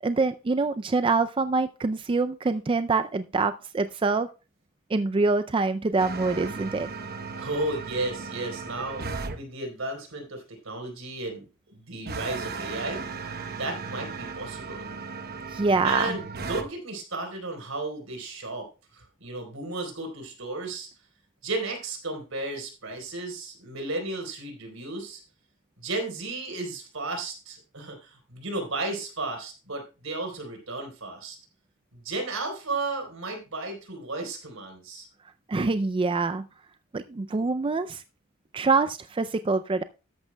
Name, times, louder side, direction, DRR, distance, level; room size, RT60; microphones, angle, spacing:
voice 1, 0.0-4.3 4.9-6.9 15.5-16.1 35.5-36.4 36.9-38.0 38.5-39.8, right 3 dB, 25° right, 11 dB, 0.4 m, -25 dB
sound 1, 6.0-9.4 12.0-16.6, right 4 dB, 50° right, 0.9 m, -36 dB
voice 2, 7.3-9.1 9.3-13.0 13.6-14.9 15.8-18.7 18.9-20.9 21.4-25.2 25.8-31.4 31.9-35.1, right 2 dB, 75° right, 3 dB, 4.0 m, -34 dB
13.5 x 11.0 x 2.2 m, 0.31 s
head